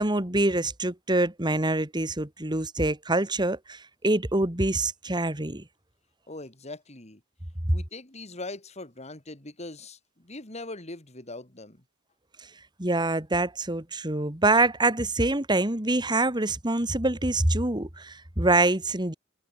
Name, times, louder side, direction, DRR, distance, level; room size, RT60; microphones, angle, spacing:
voice 1, 0.0-5.6 12.8-19.1, right 2 dB, 20° right, 2.3 m, -25 dB
voice 2, 6.3-7.2 7.7-11.8, left 2 dB, 35° left, 3.4 m, -41 dB
head